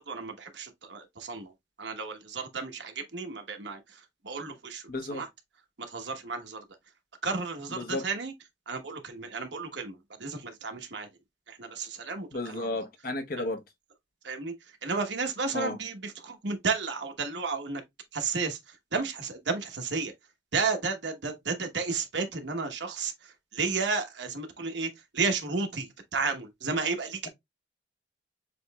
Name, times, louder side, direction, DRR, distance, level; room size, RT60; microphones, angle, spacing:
voice 1, 0.0-1.5 1.8-5.3 5.8-6.6 7.2-8.3 8.7-11.1 11.5-12.7 14.2-14.5 14.8-17.8 18.1-20.1 20.5-27.3, right 4 dB, 75° right, 1.1 m, -33 dB
voice 2, 4.9-5.2 7.7-8.0 12.3-13.6 15.5-15.8, left 2 dB, 50° left, 0.9 m, -33 dB
6.9 x 3.1 x 2.2 m
head